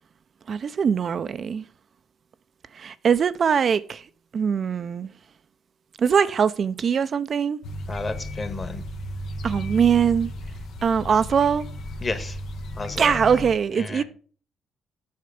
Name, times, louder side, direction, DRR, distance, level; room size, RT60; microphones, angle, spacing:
voice 1, 0.5-1.6 2.7-4.0 4.3-5.1 6.0-7.6 9.4-10.3 10.8-11.7 13.0-14.0, right 7 dB, 50° right, 0.5 m, -22 dB
sound 1, 7.6-13.5, equal, 70° left, 1.2 m, -34 dB
voice 2, 7.9-8.8 12.0-12.4 12.7-13.2 13.8-14.0, left 3 dB, 30° left, 1.5 m, -31 dB
7.9 x 6.6 x 5.0 m
cardioid pair, 90°, 0 cm